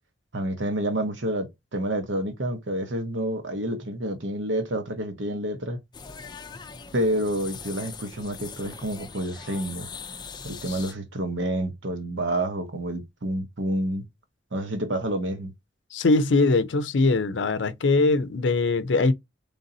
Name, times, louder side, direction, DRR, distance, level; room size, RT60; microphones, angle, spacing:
voice 1, 0.3-5.8 6.9-9.9 10.4-14.0 14.5-15.5, right 1 dB, 75° right, 1.0 m, -28 dB
sound 1, 5.9-10.9, left 5 dB, 25° left, 0.4 m, -41 dB
voice 2, 15.9-19.1, left 3 dB, 70° left, 0.5 m, -21 dB
4.0 x 3.4 x 2.7 m
head